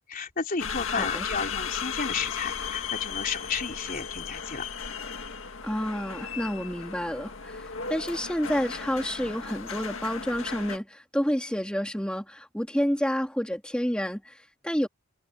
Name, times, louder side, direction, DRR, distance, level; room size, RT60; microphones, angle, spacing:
voice 1, 0.1-4.7, left 5 dB, 40° left, 3.7 m, -32 dB
sound 1, 0.6-10.8, left 6 dB, 60° left, 2.1 m, -35 dB
voice 2, 0.9-1.2 5.6-14.9, equal, 5° left, 2.3 m, -29 dB
head